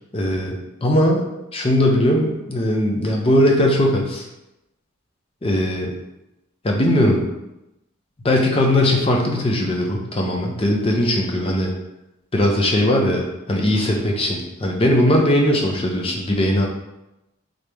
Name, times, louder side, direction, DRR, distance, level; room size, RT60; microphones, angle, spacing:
voice 1, 0.1-1.2 1.5-4.2 5.4-5.9 6.6-7.3 8.2-11.7 12.3-16.7, left 1 dB, 25° left, 0 dB, 0.5 m, -19 dB
3.9 x 3.2 x 3.4 m, 0.93 s
head